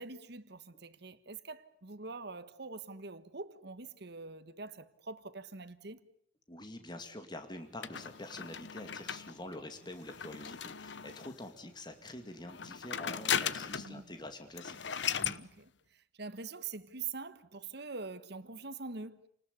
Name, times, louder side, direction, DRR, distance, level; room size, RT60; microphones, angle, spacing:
voice 1, 0.0-6.0 13.8-14.1 15.2-19.2, right 4 dB, 65° right, 1.5 m, -44 dB
voice 2, 6.5-14.8, left 1 dB, 25° left, 2.5 m, -46 dB
sound 1, 7.8-11.5 12.4-14.0 14.3-14.4 14.6-15.4, left 8 dB, 70° left, 1.0 m, -37 dB
29.5 x 19.5 x 8.3 m
head